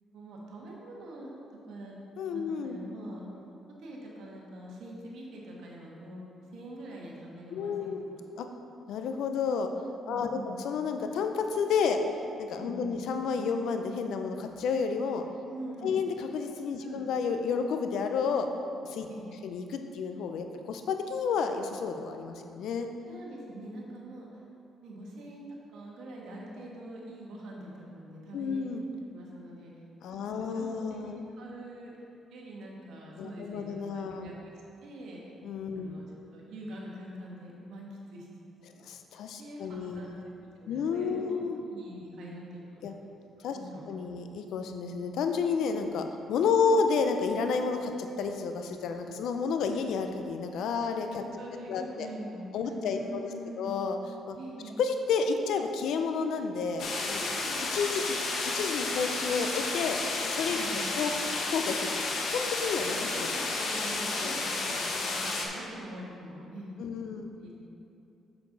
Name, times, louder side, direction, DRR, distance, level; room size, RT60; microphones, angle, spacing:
voice 1, 0.0-2.0 2.3-3.2 3.8-8.2 10.0-10.6 12.6-13.0 15.5-16.0 16.8-17.0 19.1-19.4 23.1-24.4 24.8-28.7 29.1-29.7 30.3-31.9 32.3-34.3 34.8-35.2 35.7-36.0 36.3-38.8 39.4-40.1 40.4-43.1 43.5-44.2 46.5-46.7 51.2-53.6 54.4-54.8 57.1-57.5 60.5-60.9 63.1-67.5, right 1 dB, 80° right, -3 dB, 1.5 m, -44 dB
voice 2, 2.2-2.8 7.5-8.1 8.4-8.5 8.9-9.7 10.1-12.0 12.4-15.2 15.8-18.5 18.8-19.1 19.4-22.9 28.3-28.8 30.0-31.2 33.2-34.3 35.4-36.0 38.8-40.2 40.7-41.6 42.8-42.9 43.4-43.6 43.9-51.2 51.7-52.1 52.5-53.2 53.6-54.0 54.3-54.4 54.8-57.2 57.7-58.2 58.5-60.0 60.2-61.1 61.5-61.9 62.2-63.5 64.2-64.3 66.8-67.3, left 5 dB, 80° left, 6 dB, 0.6 m, -31 dB
sound 1, 56.8-65.5, left 3 dB, 65° left, 1.1 m, -32 dB
6.8 x 6.8 x 4.0 m, 2.7 s
cardioid pair, 90°, 0 cm